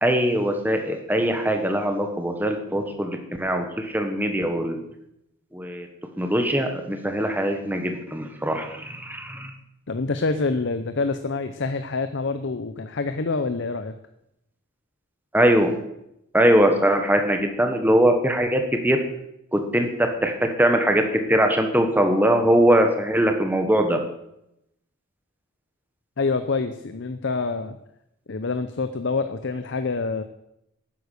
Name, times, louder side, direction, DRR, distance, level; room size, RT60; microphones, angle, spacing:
voice 1, 0.0-4.8 5.5-5.9 6.2-9.5 15.3-15.7 16.3-19.0 19.5-24.0, right 1 dB, 10° right, 5 dB, 1.4 m, -21 dB
voice 2, 9.9-13.9 26.2-27.8 28.3-30.2, left 3 dB, 55° left, 10 dB, 0.7 m, -26 dB
12.0 x 9.5 x 6.6 m, 0.81 s
head